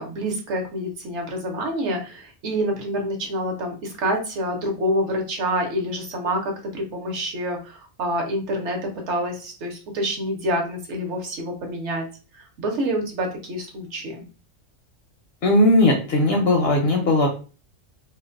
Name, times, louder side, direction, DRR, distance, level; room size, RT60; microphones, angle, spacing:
voice 1, 0.0-8.8 9.1-12.0 12.3-14.3, equal, 65° right, 2 dB, 0.9 m, -27 dB
voice 2, 15.4-17.3, left 1 dB, 65° left, 1 dB, 0.6 m, -18 dB
2.5 x 2.1 x 2.4 m, 0.35 s
omnidirectional pair, 1.4 m